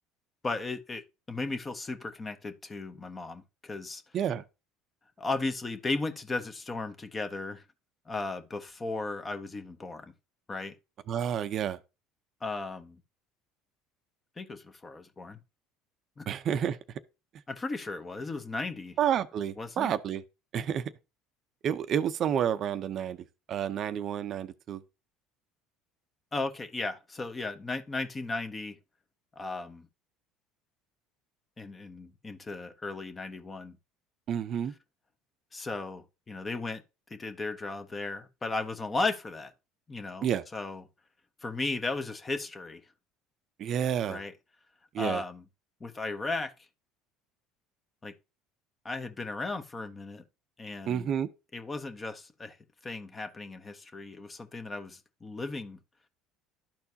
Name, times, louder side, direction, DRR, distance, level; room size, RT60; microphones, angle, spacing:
voice 1, 0.4-1.0 1.3-4.0 5.2-7.6 8.1-10.1 10.5-10.8 12.4-13.0 14.4-15.4 16.2-16.3 17.5-19.0 19.6-19.9 26.3-28.8 29.4-29.9 31.6-33.8 35.5-36.8 37.1-39.5 39.9-40.8 41.4-42.8 44.1-44.3 45.0-45.4 45.8-46.5 48.0-48.1 48.8-50.2 50.6-51.1 51.5-52.6 52.8-55.8, left 3 dB, 25° left, 1.1 m, -35 dB
voice 2, 4.1-4.4 11.1-11.8 16.3-16.8 19.0-20.2 20.5-20.9 21.6-24.8 34.3-34.7 40.2-40.4 43.6-44.2 44.9-45.2 50.9-51.3, right 9 dB, 50° right, 0.6 m, -30 dB
12.0 x 4.4 x 2.8 m
supercardioid pair, 85°, 0 cm